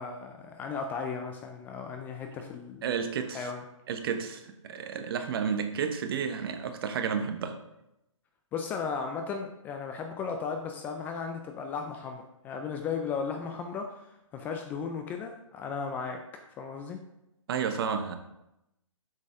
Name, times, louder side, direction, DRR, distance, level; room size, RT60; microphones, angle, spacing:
voice 1, 0.0-2.8 3.3-3.6 8.5-16.2 16.6-17.0, left 5 dB, 10° left, 4 dB, 0.3 m, -35 dB
voice 2, 2.8-3.5 3.9-7.6 17.5-18.2, right 6 dB, 45° right, 7 dB, 1.0 m, -31 dB
7.7 x 6.3 x 3.7 m, 0.87 s
hypercardioid pair, 140°, 17 cm